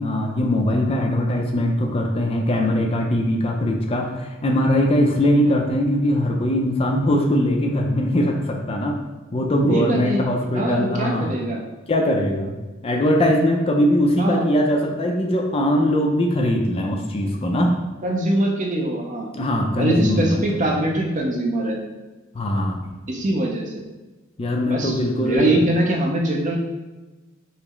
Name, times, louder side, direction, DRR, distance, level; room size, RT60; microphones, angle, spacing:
voice 1, 0.0-9.0 9.3-11.3 11.9-12.5 12.8-17.8 19.3-20.7 22.3-22.9 24.4-25.6, left 1 dB, 30° left, 1 dB, 0.4 m, -21 dB
voice 2, 9.5-11.6 14.2-14.5 18.0-19.3 19.8-21.8 23.1-23.8 24.7-26.6, right 1 dB, 40° right, 0 dB, 0.6 m, -23 dB
5.5 x 2.0 x 3.0 m, 1.2 s
head